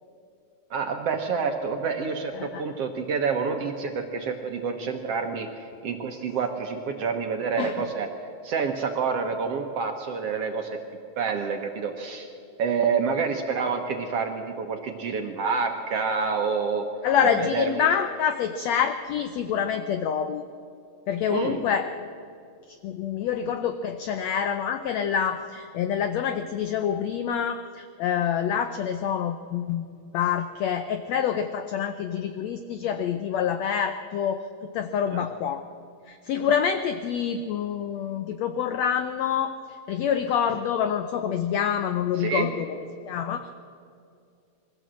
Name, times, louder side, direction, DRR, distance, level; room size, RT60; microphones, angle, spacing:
voice 1, 0.7-5.5 5.8-8.1 8.4-10.7 11.2-12.3 12.6-16.8 17.2-17.8 21.3-21.6 35.1-35.3 42.2-42.5, right 5 dB, 65° right, 4 dB, 1.6 m, -28 dB
voice 2, 17.0-20.4 21.1-21.9 22.8-29.8 30.1-34.4 34.7-35.6 36.1-39.5 39.9-42.7 43.1-43.5, left 8 dB, 90° left, 9 dB, 1.5 m, -26 dB
22.5 x 15.5 x 7.6 m, 2.4 s
omnidirectional pair, 3.9 m